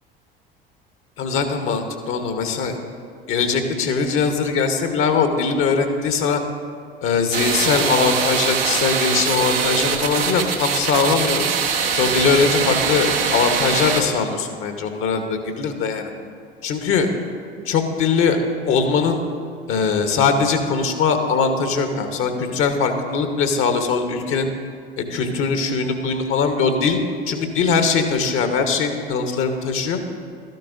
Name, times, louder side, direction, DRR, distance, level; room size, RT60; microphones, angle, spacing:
voice 1, 1.2-2.8 3.3-6.4 7.0-11.4 11.9-16.1 16.6-17.1 17.7-18.4 18.6-19.2 19.7-24.5 25.0-27.0 27.3-30.0, left 5 dB, 45° left, 6 dB, 1.1 m, -21 dB
sound 1, 7.3-14.0, right 6 dB, 80° right, 1.0 m, -22 dB
13.0 x 12.0 x 2.6 m, 2.3 s
figure-of-eight pair, 65°, 29 cm